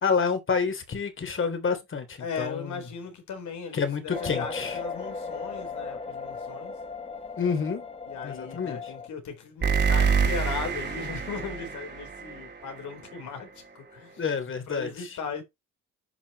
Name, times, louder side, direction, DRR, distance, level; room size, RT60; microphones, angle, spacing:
voice 1, 0.0-2.6 3.7-4.7 7.4-7.8 8.2-8.8 14.2-14.9, left 5 dB, 40° left, 3.1 m, -28 dB
voice 2, 2.2-6.8 8.0-14.3 14.7-15.4, left 5 dB, 70° left, 4.0 m, -38 dB
sound 1, 4.1-9.1, left 4 dB, 20° left, 1.2 m, -37 dB
sound 2, 4.1-4.8 9.6-13.3, right 5 dB, 35° right, 2.7 m, -28 dB
11.0 x 5.9 x 3.0 m
cardioid pair, 90°, 30 cm